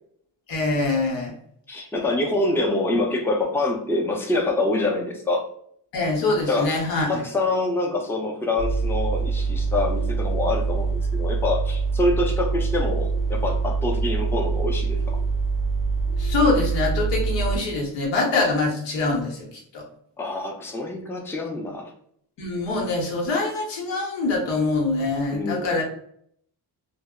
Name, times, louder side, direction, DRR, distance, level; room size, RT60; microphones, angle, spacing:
voice 1, 0.5-1.3 5.9-7.2 16.2-19.8 22.4-25.8, left 3 dB, 90° left, -1 dB, 0.9 m, -24 dB
voice 2, 1.7-5.4 6.5-6.7 7.0-15.2 20.2-21.9 25.3-25.7, left 2 dB, 5° left, 1 dB, 0.5 m, -25 dB
sound 1, 8.6-17.6, right 4 dB, 50° left, 0.6 m, -24 dB
2.0 x 2.0 x 3.5 m, 0.66 s
cardioid pair, 75°, 42 cm